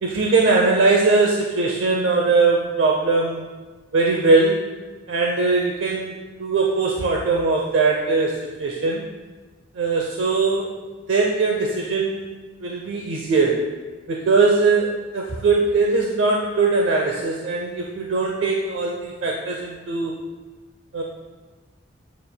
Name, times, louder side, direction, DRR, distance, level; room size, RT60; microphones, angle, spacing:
voice 1, 0.0-3.5 3.9-4.7 5.1-9.0 9.8-10.8 11.1-12.3 12.6-13.6 14.1-20.2 20.9-21.0, right 3 dB, 75° right, -1 dB, 0.6 m, -20 dB
8.4 x 6.9 x 2.2 m, 1.3 s
head